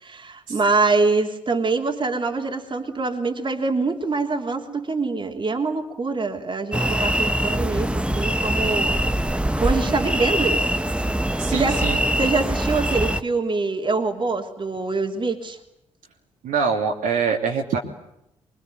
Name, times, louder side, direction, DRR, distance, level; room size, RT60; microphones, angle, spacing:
voice 1, 0.0-9.0 9.6-10.6 11.5-11.8 12.2-15.6, right 3 dB, 30° right, 4 dB, 3.1 m, -24 dB
sound 1, 6.7-13.2, right 1 dB, 5° right, 1.3 m, -23 dB
voice 2, 11.4-12.0 16.4-17.8, right 6 dB, 60° right, 1 dB, 3.0 m, -24 dB
24.5 x 23.5 x 9.6 m, 0.82 s
figure-of-eight pair, 40°, 15 cm